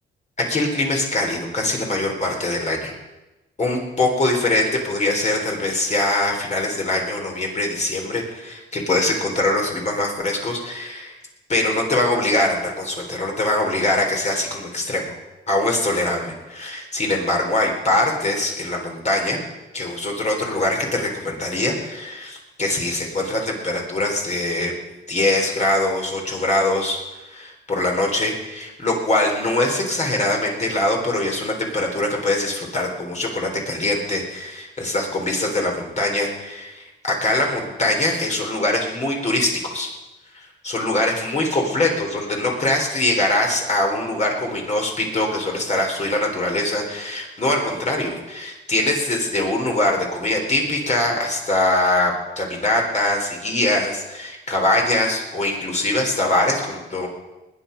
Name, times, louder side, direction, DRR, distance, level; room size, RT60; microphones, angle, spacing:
voice 1, 0.4-3.0 3.6-11.2 11.5-15.1 15.5-19.4 19.7-24.7 25.1-27.0 27.3-39.9 40.6-57.1, left 1 dB, 35° left, 0 dB, 3.9 m, -22 dB
20.0 x 9.4 x 5.3 m, 1.0 s
cardioid pair, 90°, 20 cm